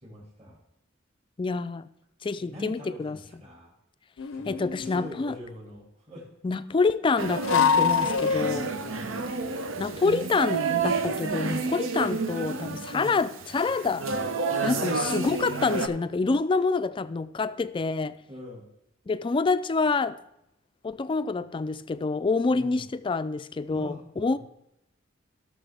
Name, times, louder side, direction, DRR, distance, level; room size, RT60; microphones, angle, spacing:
voice 1, 0.0-0.6 2.4-3.7 4.3-6.3 8.9-9.3 12.3-12.5 12.9-13.1 14.5-14.8 18.3-18.7 22.5-22.9 23.7-24.0 24.3-24.4, left 1 dB, 35° right, -2 dB, 2.3 m, -43 dB
voice 2, 1.4-1.9 2.2-3.2 4.5-5.4 6.4-8.7 9.8-14.1 14.6-18.1 19.1-20.2 20.8-24.4, left 4 dB, 25° left, 14 dB, 0.3 m, -27 dB
sound 1, 4.2-5.2 7.4-8.9, left 7 dB, 80° left, 0.5 m, -25 dB
sound 2, 7.2-15.9, right 4 dB, 85° right, 0.8 m, -30 dB
16.5 x 6.4 x 3.5 m, 0.83 s
head